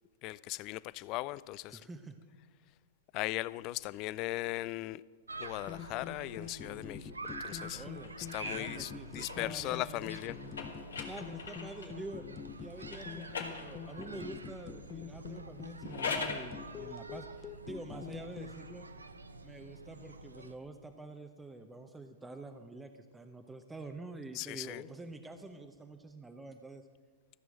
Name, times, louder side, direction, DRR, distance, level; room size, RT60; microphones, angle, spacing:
voice 1, 0.2-1.8 3.1-5.0 5.4-7.9 8.2-10.4 24.3-24.9, left 18 dB, 40° left, 0.3 m, -38 dB
voice 2, 1.7-2.2 7.7-8.2 8.5-10.5 11.1-12.2 12.6-18.9 19.4-26.9, right 2 dB, 10° right, 0.8 m, -47 dB
sound 1, 5.3-20.5, right 3 dB, 85° right, 0.7 m, -48 dB
sound 2, 5.7-18.5, left 7 dB, 25° left, 0.7 m, -46 dB
sound 3, 8.0-12.0 12.9-14.2 15.7-16.5, left 5 dB, 80° left, 1.9 m, -42 dB
14.0 x 6.2 x 8.7 m
figure-of-eight pair, 105°, 0 cm